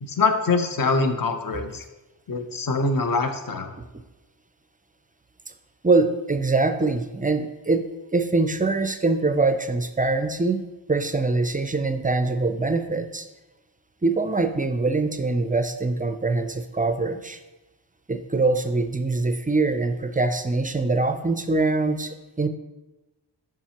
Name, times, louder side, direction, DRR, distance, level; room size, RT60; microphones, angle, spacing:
voice 1, 0.0-1.8 2.3-3.7, left 3 dB, 45° left, 7 dB, 0.8 m, -24 dB
voice 2, 5.8-7.8 8.1-10.6 10.9-13.3 14.0-17.4 18.1-22.5, right 3 dB, 20° right, 8 dB, 0.4 m, -23 dB
7.2 x 5.7 x 2.9 m, 1.1 s
wide cardioid pair, 75°, 46 cm